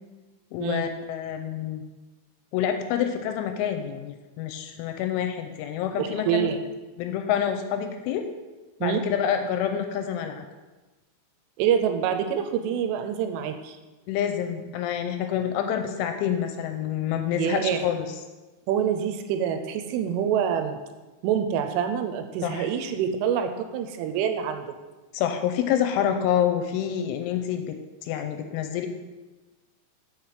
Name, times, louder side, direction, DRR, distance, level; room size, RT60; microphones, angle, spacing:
voice 1, 0.5-1.8 2.5-6.5 7.0-8.3 8.8-10.4 14.1-18.1 22.4-22.7 25.1-27.7 28.0-28.9, left 9 dB, 85° left, 6 dB, 2.9 m, -27 dB
voice 2, 6.0-6.6 8.8-9.0 11.6-13.8 17.4-17.8 18.7-20.8 21.2-24.7, right 8 dB, 80° right, 7 dB, 3.1 m, -26 dB
6.5 x 5.9 x 7.2 m, 1.2 s
omnidirectional pair, 5.8 m